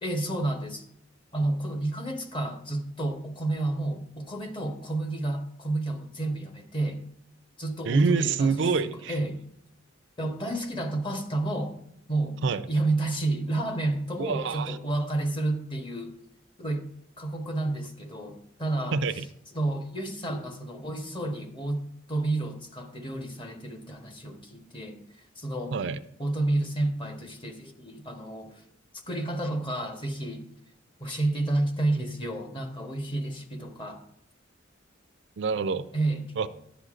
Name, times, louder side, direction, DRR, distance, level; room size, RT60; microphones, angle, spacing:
voice 1, 0.0-0.8 1.3-7.0 7.6-9.4 10.2-11.8 12.1-12.4 12.7-16.2 16.6-16.9 17.2-19.0 19.5-21.8 22.1-25.0 25.4-25.8 26.2-28.6 28.9-30.5 31.0-34.0 35.9-36.3, right 2 dB, 25° left, 5 dB, 0.9 m, -30 dB
voice 2, 7.8-9.2 12.4-12.6 14.2-14.8 18.9-19.2 25.7-26.0 35.4-35.9 36.4-36.5, right 5 dB, 65° right, 11 dB, 0.4 m, -26 dB
11.5 x 7.7 x 2.5 m, 0.74 s
head